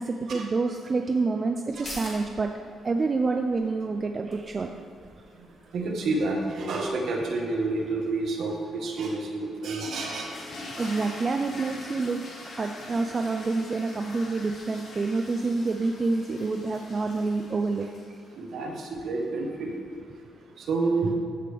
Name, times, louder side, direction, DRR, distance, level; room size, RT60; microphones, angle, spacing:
voice 1, 0.0-2.5 2.8-4.7 10.7-12.2 12.6-17.9, right 3 dB, 25° right, 4 dB, 0.3 m, -27 dB
sound 1, 1.6-8.8 9.1-9.2, left 2 dB, 35° left, 1.6 m, -48 dB
voice 2, 5.7-10.3 10.8-11.0 18.4-19.7 20.6-21.1, right 3 dB, 60° right, 1 dB, 1.3 m, -29 dB
sound 2, 9.8-18.3, left 2 dB, 55° left, 1.5 m, -43 dB
13.5 x 5.1 x 3.4 m, 2.3 s
cardioid pair, 155°, 0 cm